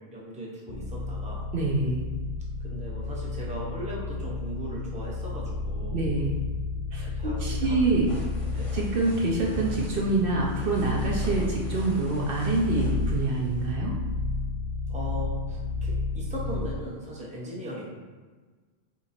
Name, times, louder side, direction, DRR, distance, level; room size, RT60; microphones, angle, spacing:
voice 1, 0.0-1.5 2.6-6.2 7.2-7.8 8.5-8.7 14.9-17.9, equal, 10° right, -4 dB, 0.7 m, -38 dB
sound 1, 0.7-16.8, left 3 dB, 85° left, 0.9 m, -32 dB
voice 2, 1.5-2.1 5.9-6.4 6.9-7.1 7.4-8.1 8.7-14.0, right 3 dB, 65° right, -2 dB, 0.8 m, -26 dB
sound 2, 7.8-13.7, left 1 dB, 35° left, 0.8 m, -47 dB
3.6 x 2.9 x 4.1 m, 1.4 s
omnidirectional pair, 1.1 m